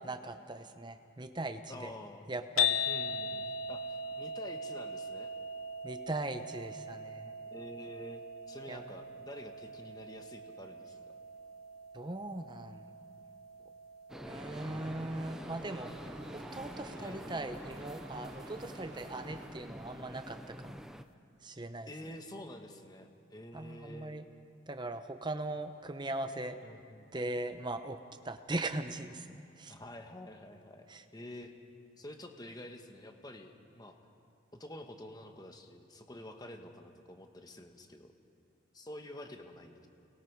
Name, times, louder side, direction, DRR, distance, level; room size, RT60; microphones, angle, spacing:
voice 1, 0.0-1.9 2.3-2.8 5.8-7.3 8.7-8.9 11.9-12.9 14.2-15.9 16.3-20.4 20.6-20.8 21.4-21.9 23.5-24.2 24.7-26.6 27.1-28.0 28.2-29.7 30.9-31.0, right 2 dB, 20° right, 8 dB, 0.9 m, -39 dB
voice 2, 1.7-2.3 2.9-5.3 7.5-11.0 17.0-17.2 21.8-24.1 26.6-27.1 29.7-30.9 31.1-31.5 32.0-34.0 34.5-38.1 38.7-39.9, left 1 dB, 20° left, 4 dB, 1.3 m, -48 dB
sound 1, 2.6-18.8, left 4 dB, 80° left, 0.7 m, -40 dB
sound 2, 14.1-21.0, equal, ahead, 0.5 m, -46 dB
sound 3, 14.3-19.5, right 2 dB, 60° right, 2.6 m, -53 dB
29.5 x 21.0 x 4.7 m, 2.6 s
head